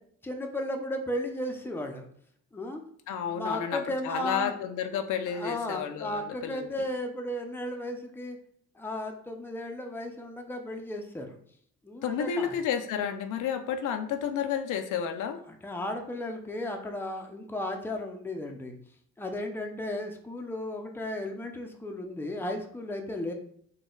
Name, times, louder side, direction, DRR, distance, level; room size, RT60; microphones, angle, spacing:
voice 1, 0.2-2.1 2.5-2.8 3.3-4.5 5.3-8.4 8.7-11.4 11.8-12.5 15.5-18.8 19.2-23.3, left 1 dB, 5° left, 3 dB, 0.5 m, -35 dB
voice 2, 3.1-6.7 12.0-15.4, left 8 dB, 80° left, 6 dB, 0.5 m, -31 dB
4.0 x 2.2 x 3.7 m, 0.63 s
cardioid pair, 90°, 30 cm